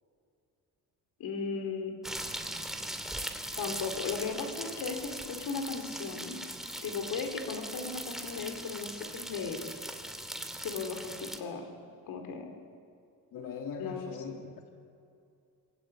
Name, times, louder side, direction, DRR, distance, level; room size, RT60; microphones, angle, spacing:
voice 1, 1.2-2.0 3.6-6.4 6.8-9.7 10.6-11.7 12.1-12.5 13.8-14.1, left 5 dB, 90° left, 4 dB, 4.2 m, -36 dB
sound 1, 2.0-11.4, right 1 dB, ahead, 2.4 m, -40 dB
voice 2, 13.3-14.7, left 5 dB, 65° left, 3 dB, 1.9 m, -41 dB
28.0 x 21.0 x 8.6 m, 2.5 s
cardioid pair, 135°, 36 cm